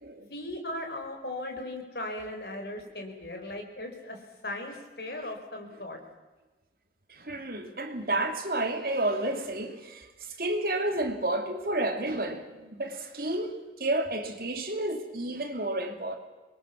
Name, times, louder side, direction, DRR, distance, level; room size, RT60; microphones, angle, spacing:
voice 1, 0.2-6.0, left 1 dB, 65° left, 4 dB, 4.7 m, -38 dB
voice 2, 7.1-16.2, right 2 dB, 55° right, 5 dB, 2.7 m, -31 dB
25.5 x 22.0 x 7.2 m, 1.2 s
head